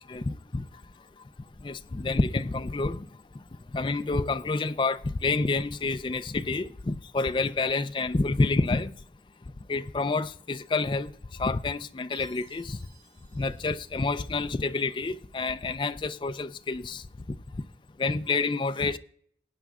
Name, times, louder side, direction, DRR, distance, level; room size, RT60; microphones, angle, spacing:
voice 1, 0.1-0.6 1.6-3.1 3.7-8.9 9.7-11.1 11.4-12.8 13.3-17.4 18.0-19.0, left 3 dB, 25° left, 0.4 m, -28 dB
Chime, 12.1-14.6, right 7 dB, 70° right, 4.7 m, -58 dB
20.0 x 9.2 x 2.4 m
head